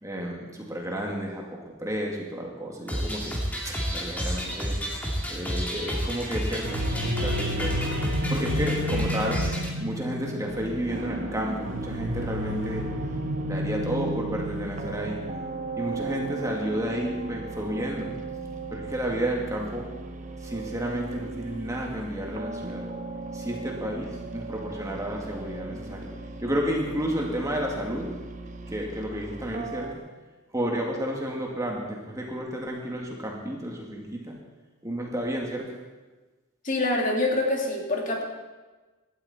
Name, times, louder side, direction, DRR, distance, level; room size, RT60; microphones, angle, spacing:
voice 1, 0.0-4.8 5.3-7.8 8.3-9.5 9.8-12.9 13.4-15.2 15.8-18.1 18.7-19.9 20.4-22.9 23.3-26.1 26.4-28.1 28.7-30.0 30.5-34.4 34.8-35.7, equal, 15° right, -1 dB, 2.3 m, -31 dB
sound 1, 2.9-9.7, equal, 10° left, 2.3 m, -30 dB
sound 2, 6.6-19.4, equal, 60° right, 1.4 m, -33 dB
sound 3, 10.5-29.9, right 3 dB, 35° right, 0.9 m, -38 dB
voice 2, 36.6-38.2, left 2 dB, 40° left, 0 dB, 2.6 m, -25 dB
18.0 x 13.0 x 4.3 m, 1.2 s
head